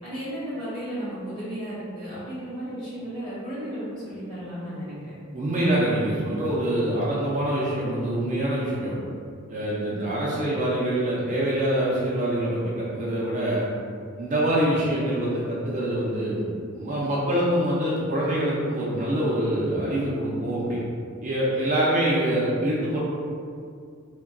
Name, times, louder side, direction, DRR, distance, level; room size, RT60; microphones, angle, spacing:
voice 1, 0.0-5.1, equal, 25° left, -11 dB, 1.2 m, -34 dB
voice 2, 5.3-9.0 9.5-13.7 14.2-16.4 16.7-20.8 21.2-23.0, right 1 dB, 35° right, -7 dB, 0.4 m, -25 dB
3.6 x 2.2 x 2.2 m, 2.3 s
head